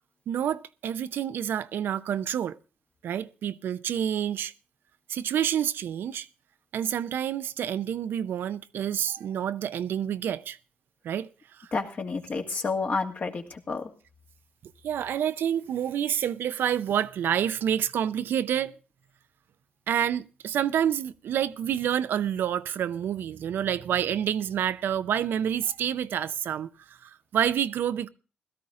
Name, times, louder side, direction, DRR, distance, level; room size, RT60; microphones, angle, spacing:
voice 1, 0.3-2.6 3.0-4.5 5.1-6.3 6.7-10.6 11.0-11.3 11.6-11.7 14.8-18.7 19.9-26.7 27.0-28.1, right 9 dB, 75° right, 0.6 m, -28 dB
voice 2, 11.7-13.9, left 4 dB, 50° left, 2.1 m, -30 dB
16.5 x 12.5 x 3.7 m
cardioid pair, 65°, 4 cm